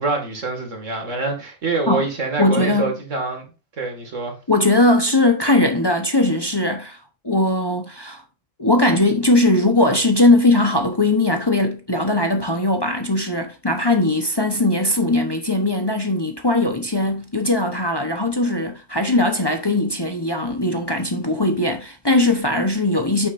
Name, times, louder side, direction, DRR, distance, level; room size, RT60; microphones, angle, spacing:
voice 1, 0.0-3.5 3.8-4.4, right 3 dB, 75° right, 2.5 m, -25 dB
voice 2, 2.4-2.9 4.5-7.0 7.2-8.2 8.6-23.3, left 2 dB, 20° left, 1.0 m, -19 dB
8.8 x 7.3 x 2.6 m
omnidirectional pair, 1.3 m